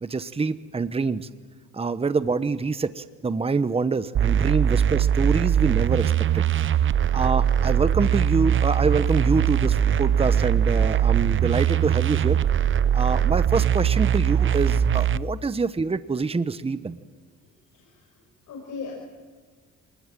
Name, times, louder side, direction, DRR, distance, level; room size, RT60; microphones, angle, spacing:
voice 1, 0.0-1.3 1.7-6.5 7.1-12.4 12.9-17.0, right 4 dB, 20° right, 12 dB, 1.0 m, -26 dB
sound 1, 4.1-15.2, right 9 dB, 40° right, 0.6 m, -21 dB
voice 2, 17.4-18.9, left 5 dB, 75° left, -2 dB, 6.2 m, -40 dB
26.5 x 20.0 x 7.5 m, 1.5 s
cardioid pair, 90°, 30 cm